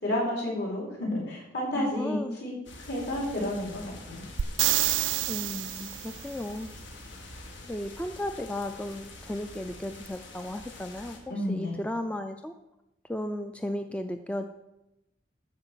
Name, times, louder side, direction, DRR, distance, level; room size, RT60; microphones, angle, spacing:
voice 1, 0.0-2.5 2.8-3.8 4.1-4.2 11.3-11.8, left 1 dB, 60° left, -4 dB, 4.8 m, -31 dB
voice 2, 1.7-2.4 5.3-6.7 7.6-12.5 13.1-14.4, left 1 dB, 5° left, 7 dB, 0.4 m, -35 dB
sound 1, 2.7-11.2, left 2 dB, 80° left, 1.9 m, -46 dB
sound 2, 4.4-6.2 10.1-10.2, right 15 dB, 80° right, 0.3 m, -27 dB
13.0 x 4.9 x 7.8 m, 0.91 s
head